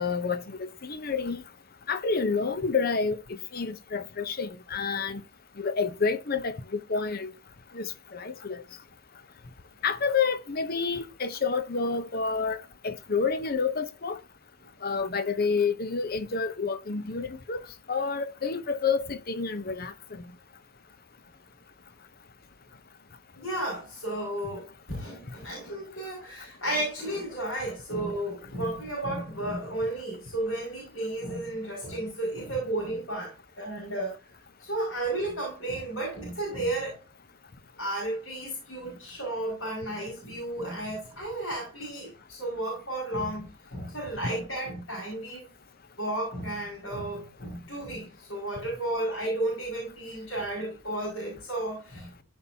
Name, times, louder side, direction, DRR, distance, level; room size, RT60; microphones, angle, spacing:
voice 1, 0.0-1.4 1.9-5.2 5.6-7.3 7.7-8.6 9.8-14.2 14.8-17.6 17.9-20.2, left 5 dB, 45° left, 0.8 m, -29 dB
voice 2, 23.3-34.2 34.6-37.0 37.8-45.4 46.0-52.2, right 1 dB, 65° left, 5.7 m, -33 dB
15.5 x 5.5 x 2.8 m
head